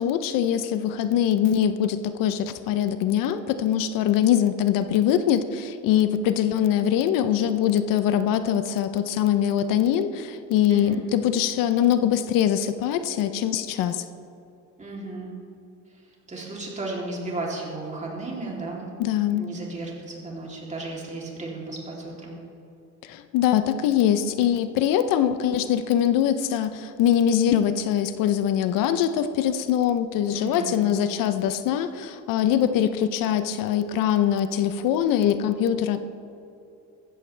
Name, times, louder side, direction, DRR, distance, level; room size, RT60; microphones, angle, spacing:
voice 1, 0.0-14.0 19.0-19.5 23.0-36.0, left 10 dB, 75° left, 11 dB, 0.7 m, -23 dB
voice 2, 10.7-11.0 14.8-15.3 16.3-18.9 19.1-22.4 30.3-30.9, right 2 dB, 20° right, -3 dB, 3.1 m, -34 dB
15.5 x 14.5 x 3.3 m, 2.7 s
cardioid pair, 130°, 34 cm